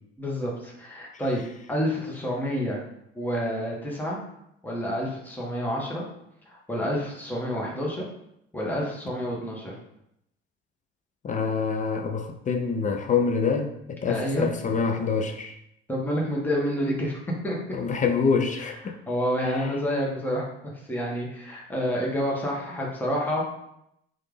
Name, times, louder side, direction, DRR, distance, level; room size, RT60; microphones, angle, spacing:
voice 1, 0.2-1.4 1.7-2.8 3.1-4.2 4.6-6.1 6.5-8.0 8.5-9.7 14.1-14.5 15.9-17.6 19.1-23.4, equal, 5° left, -3 dB, 1.0 m, -28 dB
voice 2, 11.2-15.6 17.7-19.0 19.5-19.7, left 5 dB, 25° left, 4 dB, 0.4 m, -26 dB
3.2 x 2.4 x 3.3 m, 0.79 s
figure-of-eight pair, 55°, 32 cm